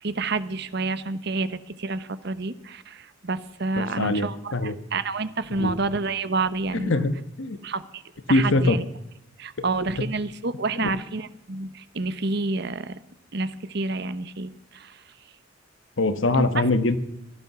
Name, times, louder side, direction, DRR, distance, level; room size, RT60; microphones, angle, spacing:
voice 1, 0.0-7.1 7.6-8.0 8.3-8.8 9.4-13.0 13.3-15.0 16.3-16.7, right 3 dB, 60° right, 13 dB, 1.0 m, -29 dB
voice 2, 3.8-4.7 5.6-5.7 6.8-7.6 8.3-8.8 16.0-17.0, left 2 dB, 80° left, 11 dB, 1.3 m, -22 dB
17.0 x 12.5 x 6.0 m, 0.86 s
head